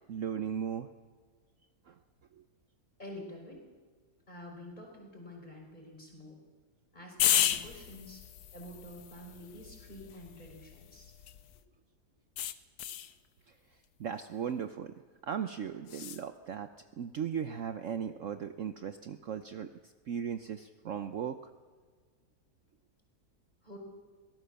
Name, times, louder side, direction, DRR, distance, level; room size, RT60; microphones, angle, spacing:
voice 1, 0.1-0.9 1.9-2.0 13.5-13.6 14.0-15.0 15.2-16.7 17.0-21.4, right 8 dB, 60° right, 9 dB, 1.0 m, -37 dB
voice 2, 3.0-3.6 4.3-6.4 6.9-8.2 8.5-11.1 23.6-23.8, left 1 dB, 25° left, 0 dB, 5.2 m, -48 dB
sound 1, 7.2-11.6 12.4-13.1 15.9-16.2, left 10 dB, 75° left, 1.3 m, -34 dB
23.5 x 18.0 x 7.0 m, 1.6 s
omnidirectional pair, 1.8 m